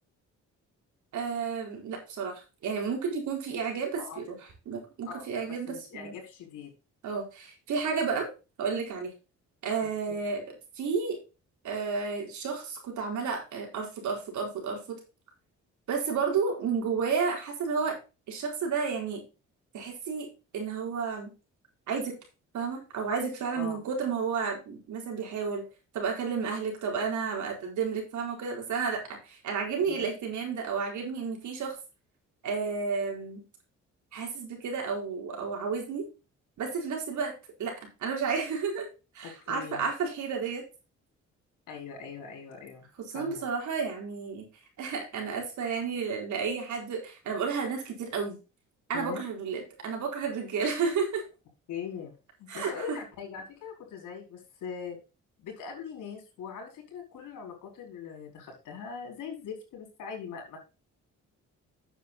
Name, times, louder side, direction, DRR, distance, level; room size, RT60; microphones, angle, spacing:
voice 1, 1.1-4.4 4.7-6.1 7.0-8.3 8.6-9.1 9.6-11.2 11.6-15.0 15.9-18.0 18.3-19.2 19.7-20.3 20.5-21.3 21.9-22.1 22.5-25.6 25.9-31.8 32.4-33.4 34.1-36.1 36.6-37.3 37.6-37.7 38.0-38.9 39.1-40.6 43.1-44.4 44.8-48.4 48.9-51.2 52.5-53.0, right 5 dB, 75° right, 1 dB, 4.5 m, -31 dB
voice 2, 4.0-4.4 5.1-6.7 9.8-10.2 23.6-23.8 29.9-30.2 39.2-39.8 41.7-42.9 43.1-43.4 48.9-49.2 51.7-52.1 52.4-55.0 55.4-60.6, left 6 dB, 85° left, 2 dB, 4.8 m, -41 dB
9.4 x 7.6 x 4.2 m, 0.29 s
cardioid pair, 90°, 30 cm